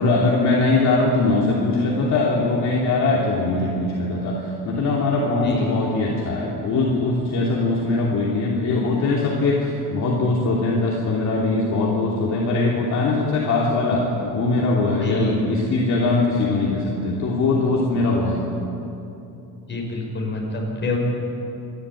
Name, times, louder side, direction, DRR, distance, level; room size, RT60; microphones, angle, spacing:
voice 1, 0.0-14.0 14.3-18.4, left 3 dB, 45° left, -4 dB, 2.9 m, -21 dB
voice 2, 5.4-5.7 15.0-15.4 19.7-21.0, left 3 dB, 30° left, -1 dB, 5.7 m, -27 dB
27.5 x 12.0 x 9.0 m, 2.8 s
cardioid pair, 155°, 39 cm